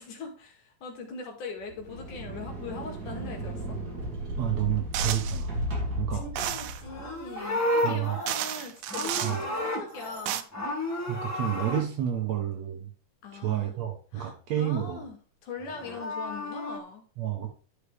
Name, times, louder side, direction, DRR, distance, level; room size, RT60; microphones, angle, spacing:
voice 1, 0.0-3.8 6.1-10.5 13.2-13.7 14.1-15.2 15.4-17.1, left 4 dB, 65° left, 2 dB, 3.3 m, -41 dB
sound 1, 1.6-7.3, equal, 30° right, 2.2 m, -34 dB
voice 2, 4.4-5.6 6.0-6.2 7.8-8.2 9.2-9.4 11.1-12.9 13.3-15.0 17.2-17.5, right 11 dB, 60° right, 3 dB, 2.1 m, -30 dB
sound 2, 4.9-5.4 6.4-6.8 7.8-7.9 8.3-9.4 10.0-10.4, right 12 dB, 80° right, 2.3 m, -32 dB
Livestock farm animals working animals, 6.8-10.2 10.5-11.8 15.6-16.8, left 1 dB, 15° left, 0.5 m, -32 dB
11.5 x 5.7 x 3.5 m, 0.38 s
omnidirectional pair, 4.0 m